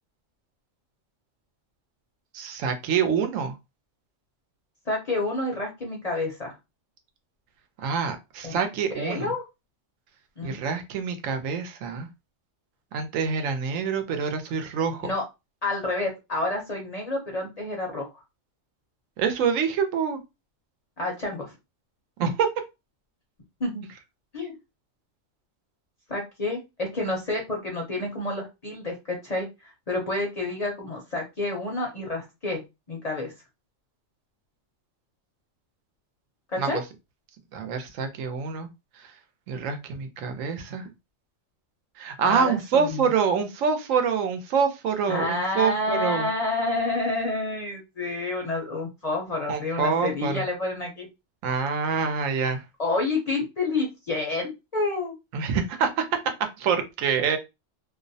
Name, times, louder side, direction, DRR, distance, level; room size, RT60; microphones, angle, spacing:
voice 1, 2.3-3.5 7.8-9.3 10.4-12.1 12.9-15.1 19.2-20.2 22.2-22.5 36.6-36.8 37.5-38.7 39.0-39.1 39.5-40.9 42.0-46.3 49.5-50.4 51.4-52.6 55.3-56.0 56.6-57.4, right 6 dB, 90° right, 7 dB, 1.0 m, -26 dB
voice 2, 4.9-6.5 8.4-8.6 8.9-9.4 10.4-10.6 15.0-15.2 15.6-18.1 21.0-21.5 23.6-23.8 24.3-24.5 26.1-32.6 32.9-33.3 36.5-36.8 42.2-43.1 45.1-51.1 52.8-55.1, left 2 dB, 45° left, 0 dB, 0.5 m, -29 dB
2.5 x 2.0 x 2.6 m, 0.24 s
omnidirectional pair, 1.3 m